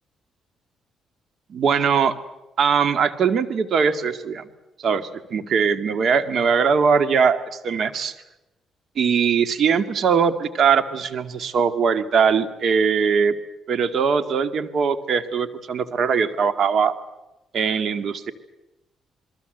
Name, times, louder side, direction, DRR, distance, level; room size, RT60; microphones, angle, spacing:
voice 1, 1.5-2.2 2.6-4.5 4.8-8.1 9.0-13.4 13.7-16.9 17.5-18.3, right 6 dB, 60° right, 11 dB, 2.2 m, -21 dB
29.0 x 22.0 x 8.0 m, 0.96 s
cardioid pair, 90°, 0 cm